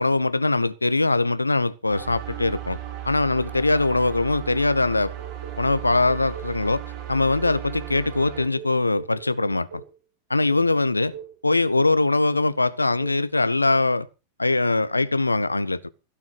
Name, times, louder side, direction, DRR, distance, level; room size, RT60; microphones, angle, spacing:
voice 1, 0.0-2.8 3.0-5.1 5.6-6.8 7.1-9.8 10.3-11.1 11.4-14.1 14.4-15.9, left 2 dB, 80° left, 0.8 m, -22 dB
sound 1, 1.9-8.5, right 11 dB, 45° right, 7.0 m, -36 dB
sound 2, 5.2-6.6 7.1-10.0 10.5-10.7 11.1-11.4 11.7-12.0 12.3-12.6 13.0-13.2, right 8 dB, 70° right, 4.1 m, -42 dB
16.0 x 6.2 x 7.6 m
figure-of-eight pair, 90°, 0 cm